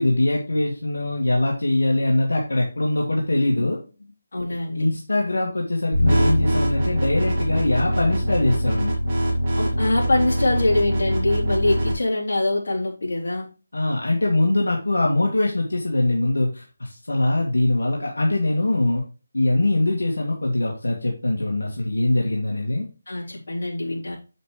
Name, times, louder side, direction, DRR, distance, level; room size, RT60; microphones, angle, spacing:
voice 1, 0.0-3.8 4.7-8.9 13.7-19.0 19.3-22.9, left 2 dB, 85° left, -1 dB, 2.0 m, -22 dB
voice 2, 4.3-5.0 9.6-13.5 23.1-24.2, left 2 dB, 65° left, -2 dB, 3.6 m, -24 dB
sound 1, 5.9-11.9, equal, 30° right, 3.2 m, -23 dB
7.4 x 6.5 x 3.2 m, 0.32 s
figure-of-eight pair, 165°, 0 cm